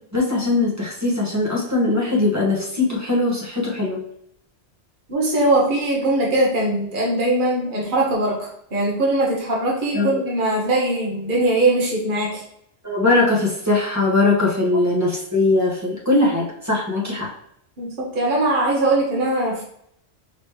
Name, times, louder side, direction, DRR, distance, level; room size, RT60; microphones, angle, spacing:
voice 1, 0.1-4.0 9.9-10.2 12.8-17.3, left 2 dB, 15° right, -4 dB, 1.3 m, -20 dB
voice 2, 5.1-12.4 17.8-19.6, right 2 dB, 45° right, -3 dB, 1.3 m, -21 dB
5.2 x 3.1 x 3.2 m, 0.71 s
omnidirectional pair, 1.2 m